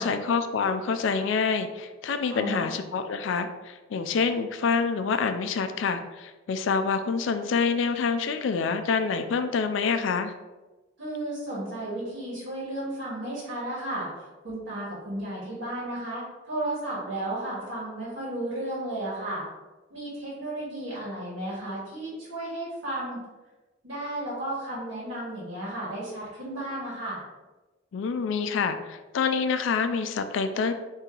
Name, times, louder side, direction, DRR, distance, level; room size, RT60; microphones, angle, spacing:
voice 1, 0.0-10.3 27.9-30.7, left 5 dB, 75° left, 9 dB, 0.3 m, -27 dB
voice 2, 2.3-2.7 11.0-19.4 19.9-23.2 23.8-27.2, right 1 dB, 70° right, -8 dB, 1.4 m, -33 dB
4.4 x 2.7 x 3.8 m, 1.2 s
head